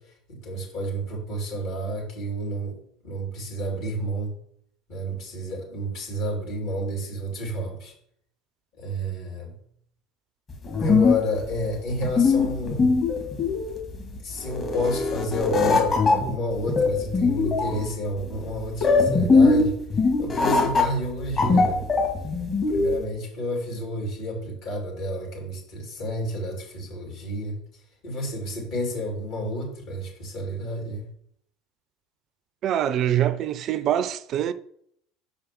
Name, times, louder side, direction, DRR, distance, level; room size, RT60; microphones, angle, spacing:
voice 1, 0.0-2.8 3.0-4.3 4.9-7.9 8.8-9.5 10.8-13.0 14.2-21.8 22.7-31.1, equal, 55° left, 3.1 m, -30 dB
sound 1, 10.5-23.0, left 4 dB, 30° left, 2.1 m, -21 dB
voice 2, 32.6-34.5, right 11 dB, 45° right, 0.4 m, -24 dB
5.6 x 4.9 x 6.1 m
figure-of-eight pair, 70°, 0 cm